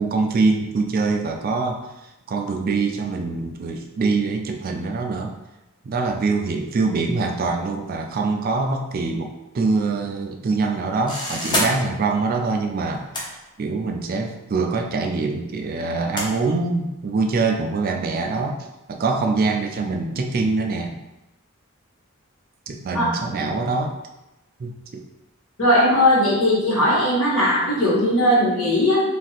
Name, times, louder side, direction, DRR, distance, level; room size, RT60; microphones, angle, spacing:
voice 1, 0.0-1.8 2.3-5.3 5.8-21.0 22.7-23.9 24.6-25.0, right 3 dB, 40° right, 3 dB, 0.3 m, -24 dB
sound 1, 11.1-11.7 12.9-13.2 14.4-14.5 16.2-16.3, left 1 dB, 20° left, 0.6 m, -24 dB
voice 2, 25.6-29.0, left 1 dB, 70° left, -7 dB, 1.2 m, -18 dB
2.6 x 2.5 x 4.0 m, 0.97 s
head